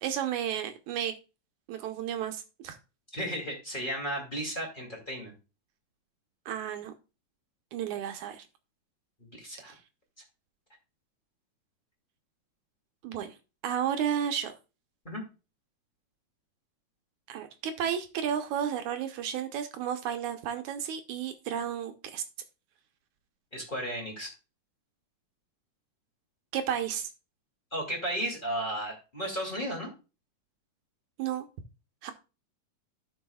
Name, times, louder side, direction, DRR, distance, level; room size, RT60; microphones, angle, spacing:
voice 1, 0.0-1.1 1.7-2.8 6.5-6.9 7.7-8.4 9.7-9.8 13.0-13.3 13.6-14.5 17.3-22.2 26.5-27.1 31.2-31.5 32.0-32.1, right 9 dB, 75° right, 2.3 m, -32 dB
voice 2, 3.1-5.3 9.3-9.7 15.0-15.2 23.5-24.3 27.7-29.9, equal, 15° left, 2.4 m, -34 dB
16.0 x 5.6 x 2.3 m
omnidirectional pair, 3.5 m